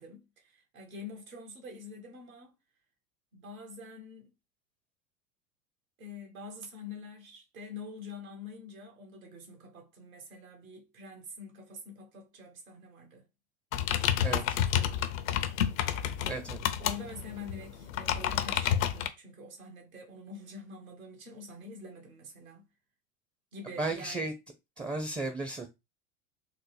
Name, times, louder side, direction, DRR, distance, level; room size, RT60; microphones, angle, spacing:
voice 1, 0.0-2.5 3.3-4.3 6.0-13.3 13.9-15.2 16.8-22.7 23.5-24.3, left 3 dB, 85° right, 1.3 m, -46 dB
sound 1, 13.7-19.1, left 10 dB, 75° left, 0.6 m, -30 dB
voice 2, 14.2-14.6 16.3-16.6 23.8-24.3 24.8-25.7, right 3 dB, 10° right, 0.4 m, -34 dB
3.7 x 2.0 x 3.2 m
hypercardioid pair, 90°, 41 cm